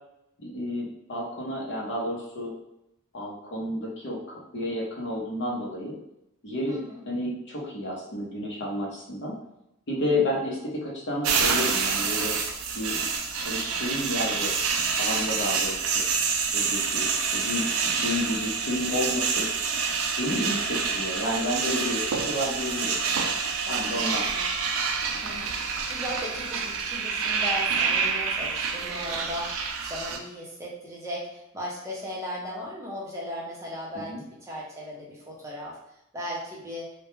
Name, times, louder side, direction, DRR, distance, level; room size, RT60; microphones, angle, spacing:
voice 1, 0.4-2.5 3.1-6.0 6.4-6.8 7.1-9.3 9.9-12.3 12.7-13.0 13.4-14.5 15.0-16.0 16.5-19.5 20.2-23.0 23.7-24.3 34.0-34.2, left 1 dB, 55° left, -4 dB, 0.7 m, -31 dB
voice 2, 6.7-7.0 10.1-10.2 23.7-24.6 25.2-25.6 25.9-35.8 36.1-36.9, equal, 15° right, -5 dB, 0.6 m, -37 dB
sound 1, 11.2-30.2, right 5 dB, 70° right, 0.4 m, -27 dB
sound 2, 17.7-29.0, equal, 85° left, 0.9 m, -46 dB
2.2 x 2.1 x 3.0 m, 0.84 s
head